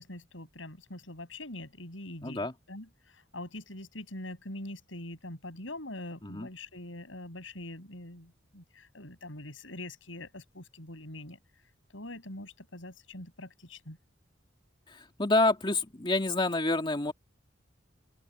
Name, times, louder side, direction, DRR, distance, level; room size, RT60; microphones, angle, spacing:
voice 1, 0.0-11.4 11.9-14.0, left 1 dB, 80° left, 6.6 m, -43 dB
voice 2, 2.2-2.5 6.2-6.5 14.9-17.1, left 2 dB, 25° left, 2.6 m, -28 dB
open air
head